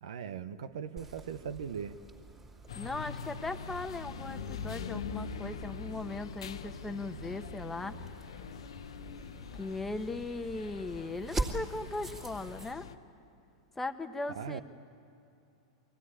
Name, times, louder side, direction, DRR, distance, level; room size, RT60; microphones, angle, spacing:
voice 1, 0.0-2.0 14.3-14.6, right 7 dB, 80° right, 11 dB, 0.9 m, -39 dB
sound 1, 1.0-12.7, right 2 dB, 15° right, 2.6 m, -44 dB
sound 2, 2.7-12.9, left 5 dB, 90° left, 1.0 m, -43 dB
voice 2, 2.7-8.0 9.6-12.9 13.8-14.6, left 2 dB, 10° left, 8 dB, 1.1 m, -38 dB
23.5 x 16.0 x 9.9 m, 2.8 s
hypercardioid pair, 115°, 3 cm